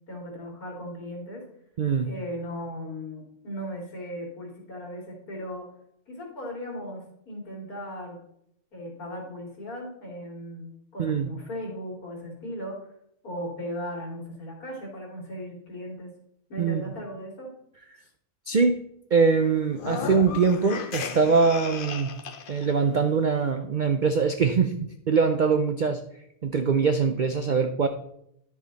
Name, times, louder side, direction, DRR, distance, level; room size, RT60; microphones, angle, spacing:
voice 1, 0.1-1.4 2.0-5.7 6.1-8.2 8.7-12.8 13.2-16.1 16.5-17.5, equal, 70° left, -1 dB, 3.2 m, -37 dB
voice 2, 1.8-2.1 11.0-11.3 16.6-16.8 18.5-18.8 19.1-22.1 22.5-26.0 26.4-27.9, right 5 dB, 65° right, 7 dB, 0.4 m, -23 dB
sound 1, 19.7-22.7, left 6 dB, 50° left, 0.6 m, -34 dB
11.0 x 6.6 x 4.0 m, 0.74 s
omnidirectional pair, 1.6 m